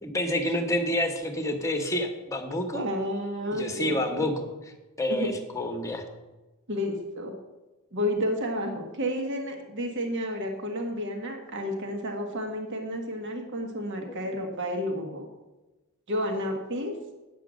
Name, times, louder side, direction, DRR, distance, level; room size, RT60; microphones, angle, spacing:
voice 1, 0.0-2.8 3.5-4.5 5.0-6.0 14.0-14.2, left 1 dB, 15° left, 5 dB, 1.2 m, -28 dB
voice 2, 2.7-4.2 5.1-5.3 6.7-7.3 7.9-15.2 16.1-16.9, equal, 55° right, 3 dB, 1.5 m, -31 dB
9.2 x 7.6 x 6.3 m, 1.1 s
head